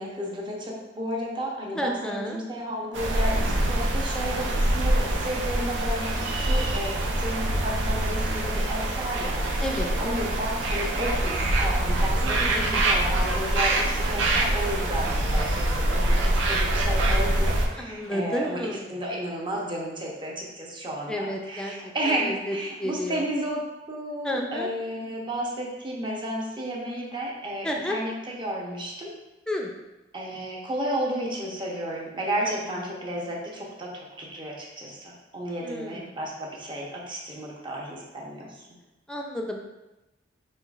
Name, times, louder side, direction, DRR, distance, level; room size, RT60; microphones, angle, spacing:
voice 1, 0.0-9.4 10.0-18.6 18.9-23.6 23.9-29.1 30.1-38.6, right 1 dB, 25° right, -3 dB, 0.8 m, -32 dB
voice 2, 1.7-2.4 9.6-10.0 12.2-13.1 17.8-18.9 21.1-23.3 24.2-24.7 27.6-28.0 29.5-29.7 32.4-32.8 35.6-36.1 39.1-39.6, left 1 dB, 5° left, 1 dB, 0.4 m, -32 dB
sound 1, 2.9-17.7, right 1 dB, 90° right, 0.6 m, -25 dB
sound 2, 13.7-18.8, right 1 dB, 45° right, 1.1 m, -45 dB
5.6 x 3.0 x 2.4 m, 1.0 s
head